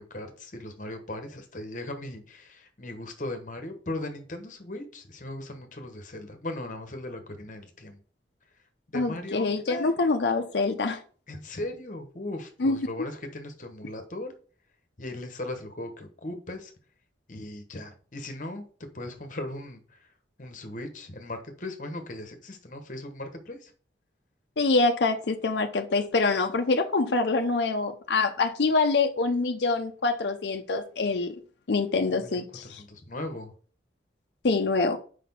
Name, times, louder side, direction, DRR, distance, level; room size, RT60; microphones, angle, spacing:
voice 1, 0.0-8.0 8.9-9.9 11.3-14.3 15.0-16.7 17.3-20.1 20.4-23.7 32.1-33.5, left 1 dB, 45° left, 1.0 m, -38 dB
voice 2, 8.9-11.0 12.6-13.1 24.6-31.3 31.7-32.8 34.4-35.0, left 3 dB, 70° left, 0.5 m, -25 dB
5.0 x 4.2 x 5.4 m
head